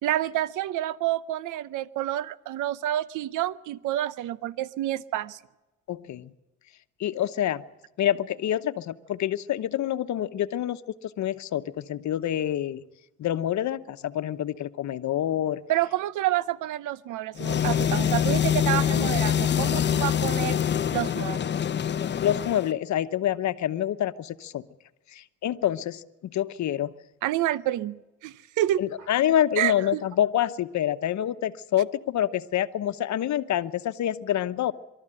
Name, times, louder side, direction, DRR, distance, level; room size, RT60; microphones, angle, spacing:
voice 1, 0.0-5.4 15.7-20.6 20.9-21.6 27.2-28.8 29.6-30.0, right 13 dB, 85° right, 19 dB, 0.7 m, -28 dB
voice 2, 5.9-6.3 7.0-7.6 8.0-12.8 13.2-15.6 22.2-24.6 25.1-26.0 26.3-26.9 28.8-34.7, left 11 dB, 70° left, 12 dB, 1.0 m, -27 dB
sound 1, 17.4-22.7, left 9 dB, 35° left, 0.6 m, -25 dB
23.5 x 13.5 x 8.9 m, 1.0 s
cardioid pair, 90°, 30 cm